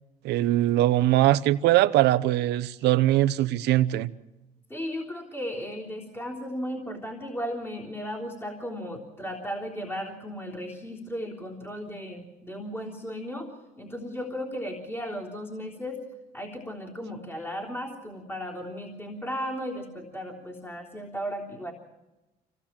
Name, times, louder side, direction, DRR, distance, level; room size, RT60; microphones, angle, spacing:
voice 1, 0.2-4.1, right 15 dB, 80° right, 0.9 m, -21 dB
voice 2, 4.7-13.5 13.8-16.0 16.3-21.7, equal, 15° left, 3.6 m, -35 dB
25.5 x 17.5 x 7.5 m
cardioid pair, 110°, 17 cm